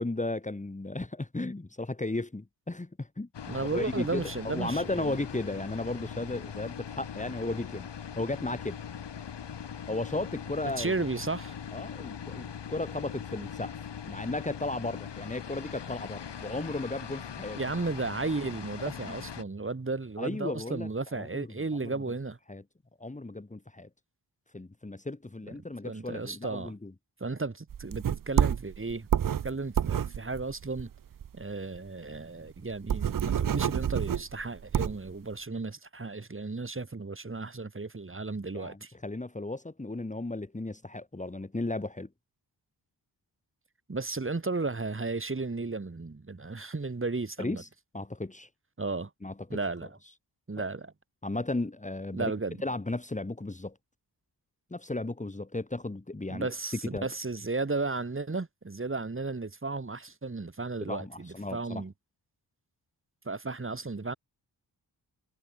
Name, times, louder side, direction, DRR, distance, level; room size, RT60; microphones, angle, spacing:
voice 1, 0.0-3.3 3.6-7.9 8.2-8.8 9.9-10.9 11.7-13.7 14.1-17.6 19.1-19.2 20.2-21.5 21.8-21.9 22.5-22.6 23.0-23.9 24.5-26.9 38.5-42.1 47.4-47.7 47.9-48.5 49.2-49.3 51.2-52.3 52.6-53.8 54.7-56.5 56.9-57.1 60.8-61.8, left 2 dB, 15° left, 3.0 m, -35 dB
sound 1, 3.3-19.4, left 8 dB, 75° left, 4.7 m, -41 dB
voice 2, 3.5-5.2 10.8-11.6 17.6-22.4 25.8-26.7 27.2-29.1 29.4-30.9 31.3-38.9 43.9-47.6 48.8-49.1 49.5-49.9 50.5-50.9 52.1-52.6 56.3-61.9 63.2-64.1, right 3 dB, 30° right, 6.1 m, -34 dB
sound 2, 27.7-31.4 31.8-31.9 32.1-32.2 32.6-35.1, right 9 dB, 50° right, 0.8 m, -28 dB
wide cardioid pair, 105°, 43 cm